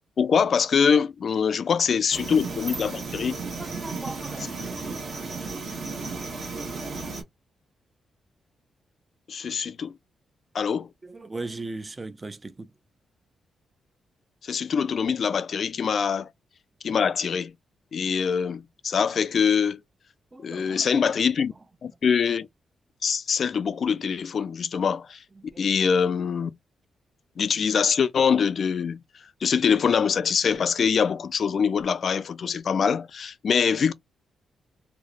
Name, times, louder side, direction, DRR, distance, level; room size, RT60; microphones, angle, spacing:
voice 1, 0.2-3.4 9.3-9.9 10.5-10.9 14.4-16.3 16.8-17.5 17.9-19.8 20.4-21.5 21.8-22.5 23.0-25.2 25.6-26.5 27.4-29.0 29.4-33.9, left 6 dB, 55° left, 0.3 m, -24 dB
Night ambient silent cuarentine, 2.1-7.2, right 4 dB, 60° right, 1.0 m, -34 dB
voice 2, 3.6-4.5 11.0-12.7 20.3-20.9 25.4-25.6, right 2 dB, 25° right, 0.4 m, -38 dB
2.9 x 2.0 x 2.4 m
cardioid pair, 115°, 0 cm